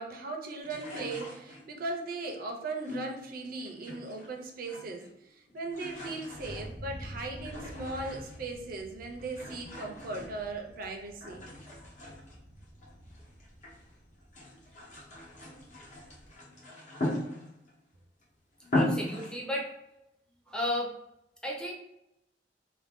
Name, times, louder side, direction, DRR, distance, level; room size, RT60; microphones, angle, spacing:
voice 1, 0.0-11.4, right 3 dB, 55° right, 2 dB, 0.5 m, -38 dB
sound 1, 0.6-1.9 2.8-4.3 4.6-5.2 5.5-8.6 9.2-10.8 11.2-13.8 14.2-17.8 18.2-18.3 18.6-19.4, left 1 dB, 45° left, 1.0 m, -38 dB
Thunder, 5.7-16.3, right 1 dB, 85° left, 1.0 m, -49 dB
voice 2, 18.7-19.7 20.5-20.9 21.4-21.7, left 1 dB, 5° left, -2 dB, 0.6 m, -33 dB
2.6 x 2.2 x 3.5 m, 0.84 s
head